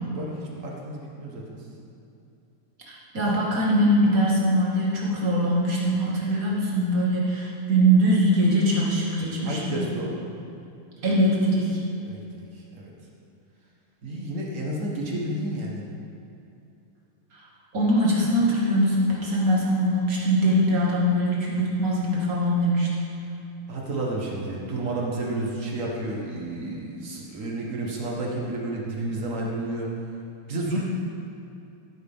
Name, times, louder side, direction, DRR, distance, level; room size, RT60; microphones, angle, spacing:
voice 1, 0.6-1.4 1.7-1.8 9.4-10.2 12.0-12.9 14.0-15.8 23.7-29.9 30.5-30.8, right 1 dB, 55° right, -3 dB, 0.8 m, -31 dB
voice 2, 2.9-9.8 11.0-11.8 17.3-17.4 17.7-22.9, equal, 30° right, -5 dB, 2.1 m, -22 dB
16.0 x 9.4 x 3.7 m, 2.7 s
omnidirectional pair, 3.6 m